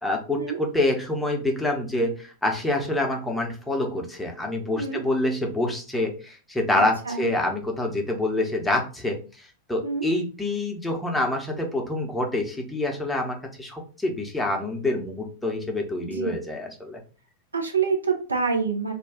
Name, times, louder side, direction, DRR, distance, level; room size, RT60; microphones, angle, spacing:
voice 1, 0.0-17.0, left 1 dB, 5° left, 1 dB, 0.7 m, -27 dB
voice 2, 6.8-7.3 9.8-10.1 16.0-16.4 17.5-18.9, right 5 dB, 80° right, 2 dB, 0.6 m, -27 dB
2.5 x 2.2 x 3.6 m, 0.37 s
figure-of-eight pair, 90°, 0 cm